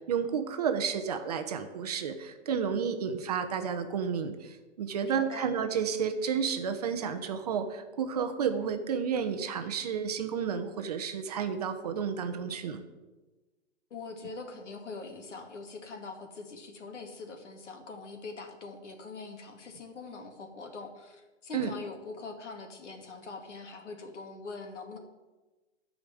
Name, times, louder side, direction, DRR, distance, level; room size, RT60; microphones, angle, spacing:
voice 1, 0.0-12.8 21.5-21.7, right 7 dB, 35° right, 8 dB, 0.8 m, -31 dB
voice 2, 5.0-5.5 13.9-25.0, left 3 dB, 75° left, 4 dB, 2.3 m, -43 dB
10.5 x 5.2 x 7.7 m, 1.2 s
hypercardioid pair, 165°, 36 cm